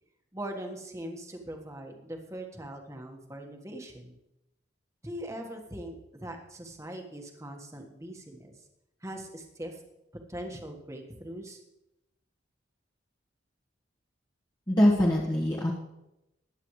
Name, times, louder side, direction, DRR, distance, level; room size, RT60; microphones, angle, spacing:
voice 1, 0.3-4.1 5.0-8.5 9.0-9.8 10.3-11.6, right 1 dB, 15° right, 3 dB, 1.5 m, -41 dB
voice 2, 14.7-15.7, equal, 20° left, -4 dB, 1.4 m, -23 dB
20.5 x 8.9 x 3.2 m, 0.92 s
head